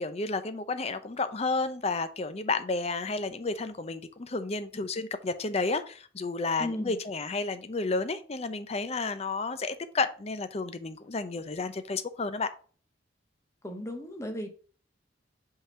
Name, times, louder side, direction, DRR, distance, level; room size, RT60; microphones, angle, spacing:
voice 1, 0.0-12.5, left 3 dB, 35° left, 0.5 m, -31 dB
voice 2, 6.6-7.0 13.6-14.5, left 1 dB, 15° left, 1.0 m, -35 dB
5.5 x 3.8 x 5.6 m
head